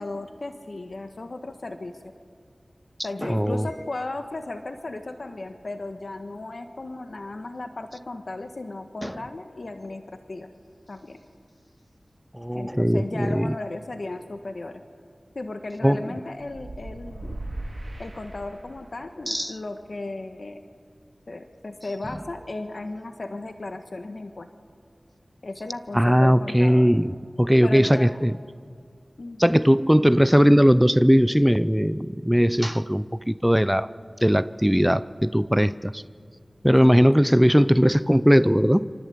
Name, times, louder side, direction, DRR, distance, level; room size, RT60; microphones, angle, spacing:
voice 1, 0.0-2.1 3.0-10.0 10.3-10.5 10.9-11.2 12.5-14.8 15.3-17.4 18.0-20.6 21.3-24.5 25.4-26.9 27.6-28.2 29.2-29.6 36.8-37.1, left 2 dB, 70° left, 7 dB, 1.5 m, -35 dB
voice 2, 3.2-3.7 9.0-9.1 12.3-13.5 15.8-16.1 19.3-19.6 25.9-28.3 29.4-33.9 34.2-36.0 36.6-38.9, equal, 5° right, 15 dB, 0.6 m, -19 dB
sound 1, 16.5-19.0, right 1 dB, 50° right, 8.0 m, -38 dB
27.0 x 25.0 x 8.6 m, 2.1 s
wide cardioid pair, 50°, 0 cm